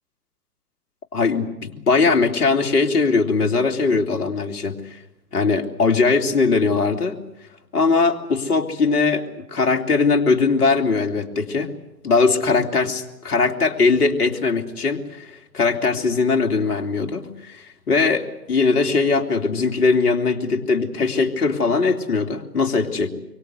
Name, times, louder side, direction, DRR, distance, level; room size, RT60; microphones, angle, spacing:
voice 1, 1.1-5.0 5.3-7.2 7.7-11.7 12.0-23.1, left 4 dB, 65° left, 4 dB, 3.2 m, -20 dB
25.5 x 24.0 x 8.2 m, 0.89 s
figure-of-eight pair, 120°, 48 cm